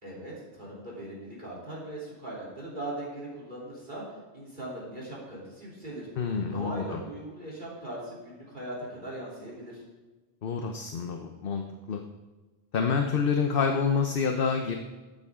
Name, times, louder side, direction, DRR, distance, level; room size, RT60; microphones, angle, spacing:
voice 1, 0.0-4.0 4.3-6.1 6.5-9.8, right 1 dB, 45° right, -5 dB, 3.5 m, -39 dB
voice 2, 6.2-7.0 10.4-12.0 12.7-14.8, left 5 dB, 55° left, 4 dB, 1.0 m, -28 dB
14.5 x 8.8 x 3.7 m, 1.2 s
omnidirectional pair, 1.2 m